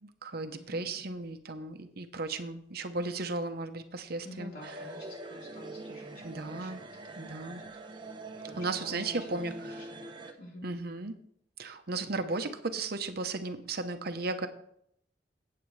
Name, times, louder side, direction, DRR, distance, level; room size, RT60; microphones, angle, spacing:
voice 1, 0.0-4.5 6.2-6.8 7.2-7.6 8.6-9.8 10.6-11.1 11.6-14.5, right 3 dB, 60° right, 8 dB, 0.9 m, -35 dB
voice 2, 0.5-1.0 4.2-7.7 8.4-10.7, left 1 dB, 60° left, -3 dB, 4.1 m, -49 dB
sound 1, 4.6-10.3, right 2 dB, 30° right, 1.0 m, -44 dB
15.0 x 8.7 x 3.3 m, 0.70 s
head